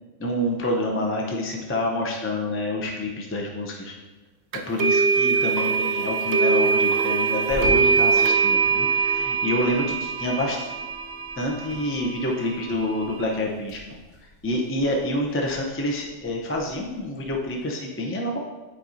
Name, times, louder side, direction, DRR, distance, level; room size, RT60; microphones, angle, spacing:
voice 1, 0.2-3.9 4.7-10.7 11.4-14.0 14.4-18.4, left 1 dB, 15° left, 0 dB, 0.4 m, -27 dB
sound 1, 4.5-13.4, right 5 dB, 65° right, 0.8 m, -23 dB
sound 2, 7.5-17.6, left 1 dB, 65° left, 2.1 m, -44 dB
8.6 x 4.7 x 2.6 m, 1.2 s
omnidirectional pair, 1.4 m